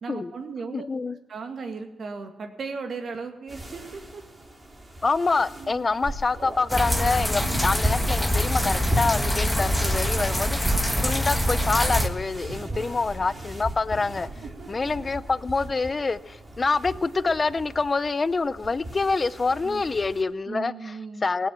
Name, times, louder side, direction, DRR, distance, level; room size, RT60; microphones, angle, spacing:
voice 1, 0.0-0.9 1.3-4.2 5.6-5.8 7.4-7.6 12.7-12.9 14.4-14.7 19.6-19.8 20.5-21.2, right 4 dB, 60° right, 6 dB, 2.0 m, -36 dB
voice 2, 0.7-1.2 5.0-10.7 11.0-14.3 14.7-21.0 21.2-21.5, left 3 dB, 35° left, 17 dB, 0.5 m, -26 dB
sound 1, 3.5-20.2, right 1 dB, 25° right, 3.4 m, -37 dB
sound 2, 6.7-12.1, equal, 5° left, 1.4 m, -24 dB
18.0 x 7.7 x 7.4 m, 1.1 s
cardioid pair, 85°, 0 cm